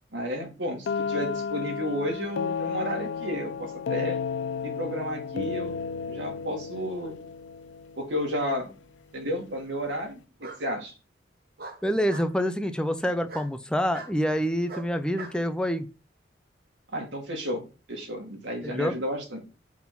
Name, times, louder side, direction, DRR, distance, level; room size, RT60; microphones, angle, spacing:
voice 1, 0.1-4.2 4.6-5.8 6.1-7.2 8.0-8.7 9.1-11.0 16.9-17.6 17.9-19.4, equal, 90° right, 2 dB, 2.1 m, -32 dB
sound 1, 0.9-8.6, left 6 dB, 75° left, 0.4 m, -33 dB
Bark, 8.8-8.9 10.4-10.6 11.6-12.3 13.3-13.5 13.9-14.1 14.7-15.4, right 3 dB, 55° right, 1.1 m, -41 dB
voice 2, 11.8-15.9 18.6-19.0, equal, 5° left, 8 dB, 0.6 m, -27 dB
6.0 x 3.6 x 6.0 m, 0.33 s
head